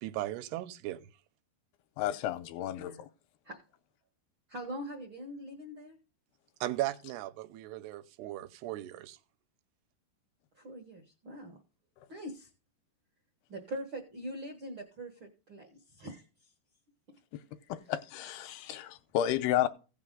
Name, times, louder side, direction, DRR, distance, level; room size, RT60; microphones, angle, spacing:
voice 1, 0.0-1.0 6.6-9.2, right 15 dB, 85° right, 2.7 m, -37 dB
voice 2, 2.0-3.1 12.0-12.1 17.3-17.4 17.7-19.7, left 11 dB, 85° left, 2.7 m, -32 dB
voice 3, 4.5-6.0 10.5-11.6 12.1-12.5 13.5-16.5, right 1 dB, 70° right, 1.2 m, -43 dB
16.5 x 5.9 x 3.8 m
omnidirectional pair, 4.7 m